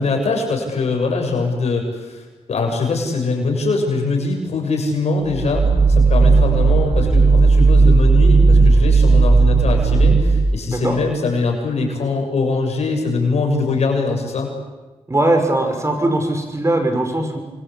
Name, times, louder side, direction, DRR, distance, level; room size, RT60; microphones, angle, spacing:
voice 1, 0.0-14.5, left 3 dB, 75° left, 3 dB, 7.2 m, -22 dB
sound 1, 5.3-10.7, right 3 dB, 50° right, 2.0 m, -14 dB
voice 2, 15.1-17.4, right 1 dB, 25° right, 5 dB, 6.1 m, -19 dB
27.0 x 23.0 x 8.6 m, 1.2 s
cardioid pair, 65°, 11 cm